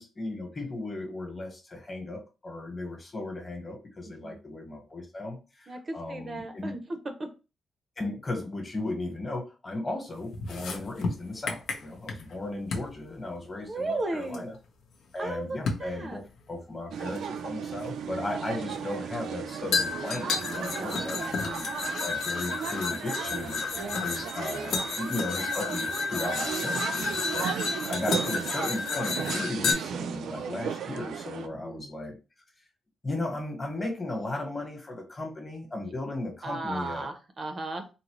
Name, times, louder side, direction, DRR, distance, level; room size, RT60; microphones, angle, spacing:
voice 1, 0.0-6.7 8.0-14.5 15.1-16.2 16.5-27.5 27.8-32.2 33.0-37.1, left 2 dB, 25° left, 1 dB, 1.1 m, -36 dB
voice 2, 4.1-4.4 5.7-7.3 13.6-14.5 15.2-16.2 20.6-21.5 23.8-24.0 27.6-28.5 31.5-31.9 35.8-35.9 36.4-37.9, right 2 dB, 30° right, 6 dB, 0.5 m, -36 dB
sound 1, 10.3-12.4 12.7-12.9 14.3-14.4 15.7-15.9 17.2-17.3 19.7-29.7, left 4 dB, 85° left, 0.6 m, -31 dB
sound 2, 16.9-31.5, right 7 dB, 85° right, 0.3 m, -36 dB
3.8 x 2.0 x 2.9 m, 0.30 s
wide cardioid pair, 150°, 0 cm